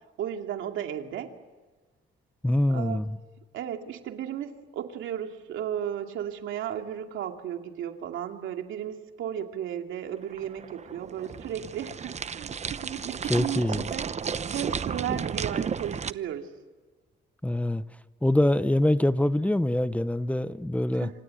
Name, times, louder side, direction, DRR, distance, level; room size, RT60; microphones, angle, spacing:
voice 1, 0.2-1.3 2.7-3.0 3.5-14.1 14.5-16.5 21.0-21.1, right 10 dB, 80° right, 4 dB, 2.5 m, -34 dB
voice 2, 2.4-3.2 13.3-13.8 17.4-17.8 18.2-21.1, left 1 dB, 5° left, 14 dB, 0.8 m, -24 dB
sound 1, 10.1-16.1, right 6 dB, 35° right, 0.8 m, -33 dB
27.5 x 26.0 x 7.8 m, 1.4 s
cardioid pair, 90°, 20 cm